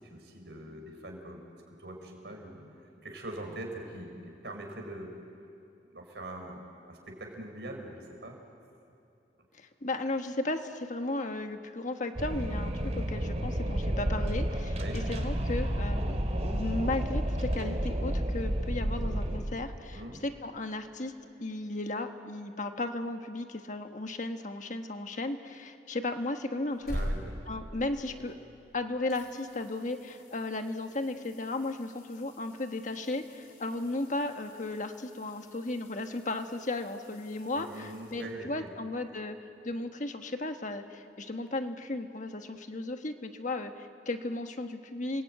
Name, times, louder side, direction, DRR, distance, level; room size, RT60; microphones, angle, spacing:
voice 1, 0.0-1.4 1.7-5.1 5.9-6.6 6.9-8.4 14.8-15.0 19.9-20.2 26.9-27.3 37.5-38.7, right 1 dB, 75° right, 2 dB, 5.0 m, -43 dB
voice 2, 9.6-16.2 16.4-21.1 21.4-27.0 27.5-28.3 28.7-39.4 39.6-45.2, left 2 dB, 45° left, 6 dB, 1.4 m, -35 dB
Wind, 12.2-19.4, equal, 40° right, 2.6 m, -31 dB
sound 1, 26.6-28.7 29.1-38.7 41.5-41.6, equal, 65° left, 5.5 m, -44 dB
30.0 x 20.5 x 9.2 m, 2.6 s
head